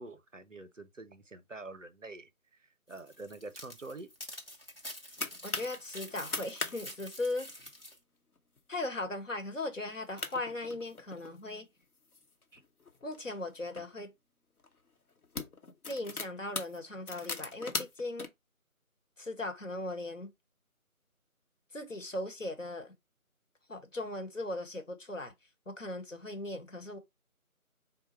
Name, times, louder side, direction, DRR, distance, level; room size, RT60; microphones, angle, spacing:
voice 1, 0.0-4.1 12.5-12.6, right 2 dB, 60° right, 0.6 m, -47 dB
sound 1, 2.9-8.0, equal, 40° left, 0.9 m, -47 dB
sound 2, 4.6-5.8 6.2-6.8 7.0-7.1 7.5-7.8 8.4-8.6 9.1-9.2 9.9-10.0 10.2-11.4 12.0-13.8 14.6-14.8 15.1-18.3, left 3 dB, 85° left, 1.0 m, -40 dB
voice 2, 5.4-7.5 8.7-11.7 13.0-14.1 15.9-18.3 19.2-20.3 21.7-22.9 23.7-25.3 25.7-27.0, left 2 dB, 60° left, 1.1 m, -38 dB
4.0 x 2.2 x 4.2 m
figure-of-eight pair, 175°, 43 cm